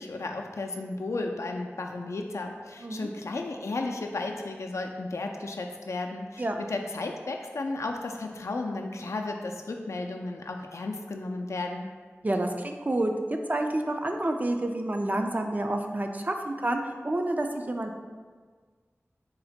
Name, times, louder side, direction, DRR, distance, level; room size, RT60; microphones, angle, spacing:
voice 1, 0.0-11.9, left 2 dB, 90° left, 3 dB, 0.3 m, -34 dB
voice 2, 12.2-13.1 13.5-18.0, right 1 dB, 35° right, 4 dB, 0.3 m, -29 dB
3.8 x 2.1 x 4.2 m, 1.5 s
wide cardioid pair, 60°, 5 cm